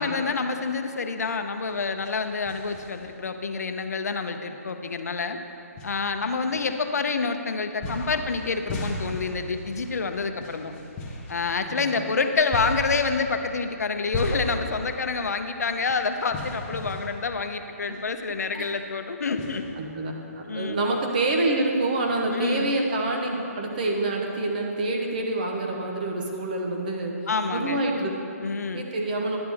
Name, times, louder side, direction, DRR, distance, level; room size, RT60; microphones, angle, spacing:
voice 1, 0.0-5.4 5.8-10.7 11.3-19.7 20.5-20.8 22.3-22.7 27.3-27.8 28.4-28.8, left 4 dB, 75° left, 7 dB, 0.7 m, -27 dB
sound 1, 1.6-3.3 3.8-3.9 4.9-5.0 5.8-7.2 7.8-18.2 18.5-18.6 19.4-20.4, left 1 dB, 10° left, 0.8 m, -37 dB
voice 2, 11.7-12.0 17.9-18.0 18.5-18.7 19.8-20.1 20.5-27.1 27.5-28.1 28.7-29.4, right 2 dB, 30° right, 1 dB, 1.0 m, -27 dB
10.5 x 7.7 x 3.5 m, 2.8 s
hypercardioid pair, 170°, 9 cm